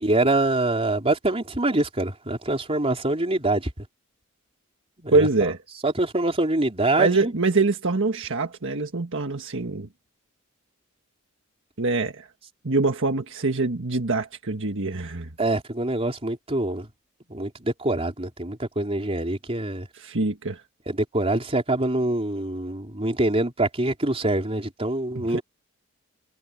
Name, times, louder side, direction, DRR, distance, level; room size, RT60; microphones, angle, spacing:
voice 1, 0.0-3.7 5.0-5.5 5.8-7.3 15.4-16.9 17.3-19.9 20.9-25.4, right 2 dB, 30° right, 3.9 m, -25 dB
voice 2, 5.1-5.6 7.0-9.9 11.8-12.3 12.6-15.3 19.9-20.6 25.3-25.4, right 3 dB, 60° right, 1.5 m, -24 dB
head